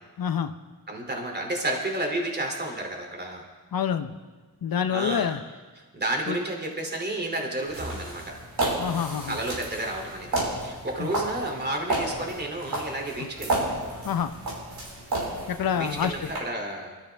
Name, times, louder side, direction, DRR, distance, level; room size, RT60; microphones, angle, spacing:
voice 1, 0.2-0.5 3.7-4.1 4.6-5.4 6.3-6.4 8.8-9.4 11.0-11.1 14.0-14.3 15.5-16.1, left 8 dB, 70° left, 10 dB, 0.7 m, -27 dB
voice 2, 0.9-3.4 4.9-5.3 5.9-8.3 9.3-13.6 15.8-16.9, right 1 dB, 25° right, 1 dB, 2.8 m, -31 dB
sound 1, 7.7-16.4, right 2 dB, 75° right, 5.0 m, -32 dB
24.0 x 13.5 x 3.4 m, 1.3 s
wide cardioid pair, 115°, 36 cm